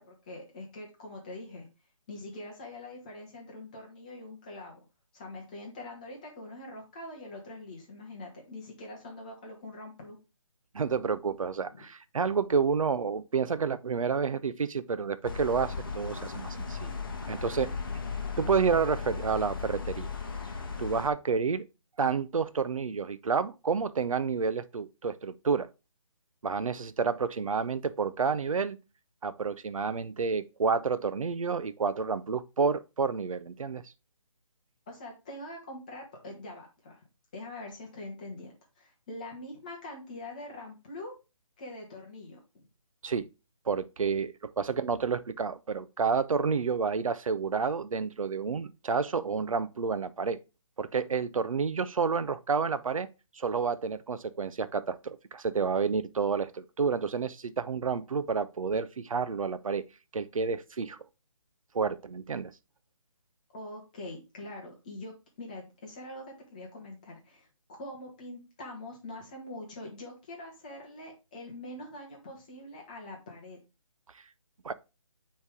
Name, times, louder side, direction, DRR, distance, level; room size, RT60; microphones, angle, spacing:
voice 1, 0.0-1.7 2.1-4.8 5.1-10.2 11.7-11.8 34.9-37.0 37.3-41.1 41.6-42.4 63.5-67.5 67.8-73.6, left 1 dB, 15° left, 1.0 m, -44 dB
voice 2, 10.7-17.0 17.3-17.7 18.4-20.1 20.8-21.6 22.0-25.7 26.4-28.8 29.2-33.8 43.0-43.3 43.7-50.4 50.8-53.1 53.3-59.8 60.1-61.0 61.7-62.5 74.6-74.7, right 5 dB, 80° right, 0.6 m, -29 dB
sound 1, 15.2-21.1, left 5 dB, 40° left, 0.8 m, -36 dB
8.1 x 3.3 x 3.5 m
hypercardioid pair, 175°, 17 cm